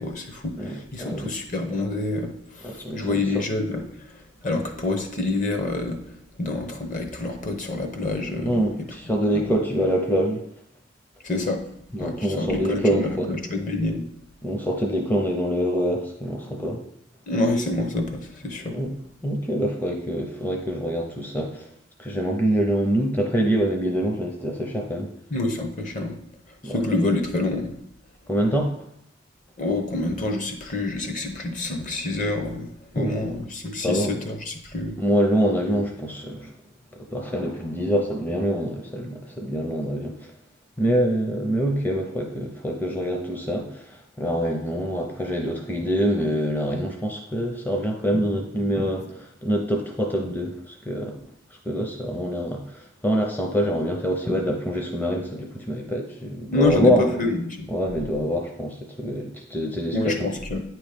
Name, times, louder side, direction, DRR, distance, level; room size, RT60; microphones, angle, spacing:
voice 1, 0.0-3.8 4.4-6.0 6.4-8.6 9.3-9.5 11.2-11.6 12.0-14.0 17.3-18.8 25.3-26.2 26.6-27.8 29.6-32.7 32.9-35.0 56.5-57.7 59.9-60.6, left 2 dB, 40° left, 4 dB, 0.9 m, -27 dB
voice 2, 0.6-1.3 2.6-3.3 8.4-10.4 11.9-13.3 14.4-16.8 18.7-18.9 19.2-21.6 22.0-25.1 26.6-26.8 28.3-28.7 33.0-33.2 33.8-34.2 35.0-36.5 37.1-40.1 40.8-51.2 51.6-57.1 57.7-60.3, equal, 10° left, 1 dB, 0.6 m, -25 dB
8.9 x 3.1 x 5.1 m, 0.76 s
head